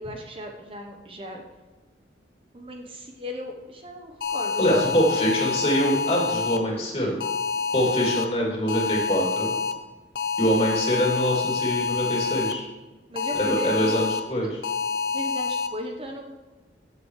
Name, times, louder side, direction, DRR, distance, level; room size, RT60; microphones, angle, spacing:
voice 1, 0.0-1.4 2.5-4.8 13.1-14.1 14.3-14.5 15.1-16.3, equal, 30° right, 3 dB, 1.0 m, -37 dB
sound 1, 4.2-6.6 7.2-8.3 8.7-9.7 10.2-12.5 13.2-14.2 14.6-15.7, left 5 dB, 55° left, 0.8 m, -27 dB
voice 2, 4.6-7.2 7.7-9.5 10.4-12.7 13.3-14.5, equal, 35° left, -2 dB, 2.8 m, -24 dB
16.5 x 7.4 x 3.2 m, 1.2 s
head